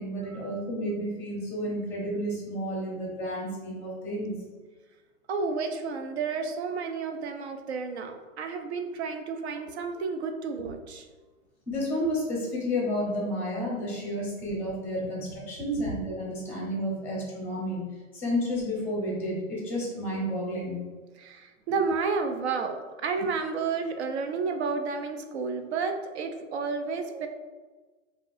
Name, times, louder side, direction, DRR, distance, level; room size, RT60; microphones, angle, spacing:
voice 1, 0.0-4.3 11.7-17.9 18.1-20.8, equal, 5° left, -3 dB, 0.9 m, -31 dB
voice 2, 5.3-11.0 21.2-27.3, right 4 dB, 55° right, 6 dB, 0.6 m, -31 dB
5.1 x 2.8 x 2.6 m, 1.3 s
hypercardioid pair, 155°, 40 cm